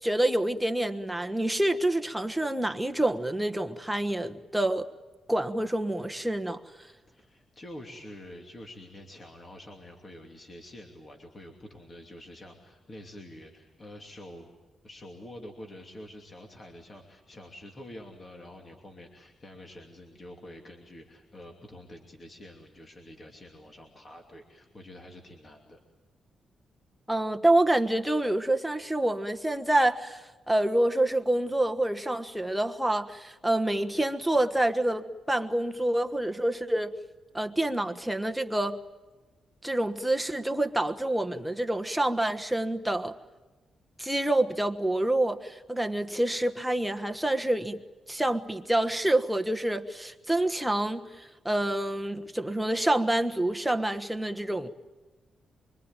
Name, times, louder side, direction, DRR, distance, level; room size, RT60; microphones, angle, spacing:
voice 1, 0.0-4.9 5.3-6.6 27.1-36.9 37.3-38.8 39.6-43.2 44.0-47.8 48.1-54.7, right 1 dB, 5° right, 1.3 m, -27 dB
voice 2, 7.1-14.5 14.8-25.8, left 1 dB, 30° left, 2.8 m, -47 dB
25.0 x 24.5 x 9.1 m
wide cardioid pair, 130°, 0 cm